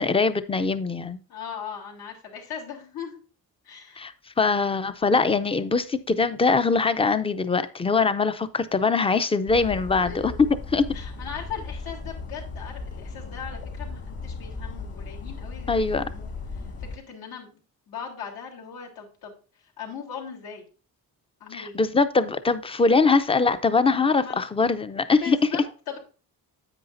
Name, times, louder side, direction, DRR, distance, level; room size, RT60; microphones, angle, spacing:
voice 1, 0.0-1.2 4.0-4.1 4.4-10.8 15.7-16.0 21.5-25.4, left 4 dB, 15° left, 0.5 m, -22 dB
voice 2, 1.3-3.2 3.6-4.1 10.0-10.4 10.9-16.3 16.8-17.5 17.9-19.4 19.8-20.7 21.4-21.8 24.2-24.4 25.2-26.0, left 7 dB, 80° left, 3.3 m, -38 dB
sound 1, 9.5-17.0, left 4 dB, 40° left, 1.9 m, -36 dB
9.9 x 8.6 x 2.6 m
cardioid pair, 170°, 36 cm